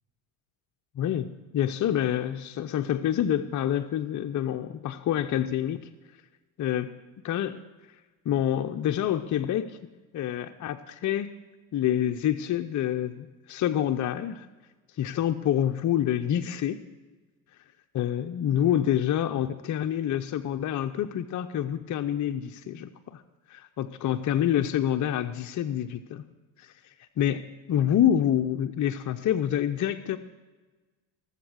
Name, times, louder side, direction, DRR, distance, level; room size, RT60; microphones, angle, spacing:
voice 1, 1.0-1.3 1.5-5.9 6.6-6.9 7.2-7.6 8.2-9.8 10.1-11.3 11.7-14.5 15.0-16.8 17.9-23.2 23.5-26.2 26.6-26.7 27.2-30.2, left 10 dB, 45° left, 7 dB, 0.7 m, -27 dB
18.0 x 7.4 x 6.3 m, 1.2 s
supercardioid pair, 85°, 42 cm